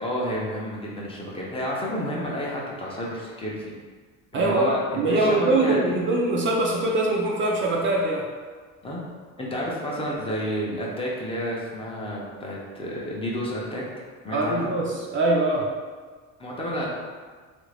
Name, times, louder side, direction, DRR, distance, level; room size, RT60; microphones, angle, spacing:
voice 1, 0.0-3.7 4.3-6.0 8.8-9.0 9.4-14.7 16.4-16.9, equal, 15° left, -4 dB, 0.5 m, -30 dB
voice 2, 4.3-8.3 14.3-15.7, right 2 dB, 35° right, -2 dB, 0.4 m, -23 dB
3.1 x 2.5 x 3.2 m, 1.5 s
cardioid pair, 130°, 34 cm